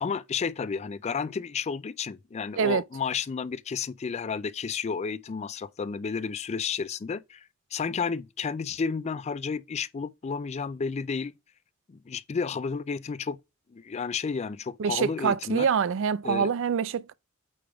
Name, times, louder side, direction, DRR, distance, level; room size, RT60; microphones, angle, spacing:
voice 1, 0.0-7.4 7.7-11.3 11.9-13.4 13.7-15.7 16.2-16.5, left 5 dB, 30° left, 0.3 m, -32 dB
voice 2, 14.8-17.1, right 6 dB, 60° right, 0.4 m, -25 dB
8.5 x 3.4 x 3.4 m
head